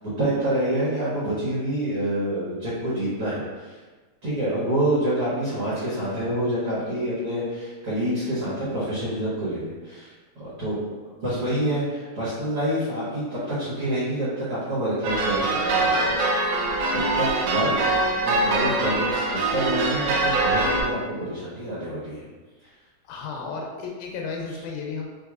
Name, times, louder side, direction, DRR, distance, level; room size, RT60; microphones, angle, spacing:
voice 1, 0.0-3.8 4.2-10.1 10.4-10.8 11.2-16.6 17.1-17.7 18.2-22.2, right 1 dB, 55° right, -11 dB, 1.6 m, -27 dB
sound 1, 15.0-20.8, right 2 dB, 80° right, 1.9 m, -23 dB
voice 2, 17.7-18.0 23.0-25.1, left 4 dB, 90° left, 1 dB, 2.4 m, -34 dB
6.1 x 2.7 x 2.4 m, 1.3 s
omnidirectional pair, 4.1 m